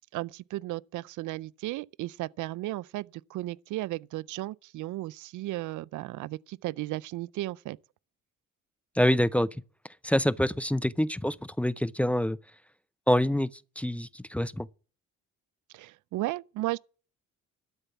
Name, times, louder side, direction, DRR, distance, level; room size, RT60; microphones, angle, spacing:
voice 1, 0.1-7.8 15.7-16.8, right 17 dB, 80° right, 0.5 m, -35 dB
voice 2, 9.0-9.6 10.0-12.4 13.1-13.5 13.8-14.7, left 1 dB, 5° left, 0.5 m, -26 dB
12.5 x 6.7 x 7.1 m
cardioid pair, 90°, 30 cm